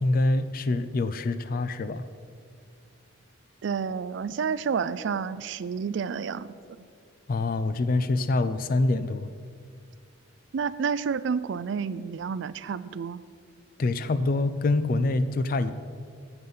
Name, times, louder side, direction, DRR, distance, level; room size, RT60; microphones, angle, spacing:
voice 1, 0.0-2.0 7.3-9.3 13.8-15.7, left 2 dB, 40° left, 12 dB, 0.3 m, -25 dB
voice 2, 3.6-6.5 10.5-13.2, right 6 dB, 60° right, 16 dB, 0.3 m, -30 dB
9.3 x 8.0 x 5.6 m, 2.2 s
head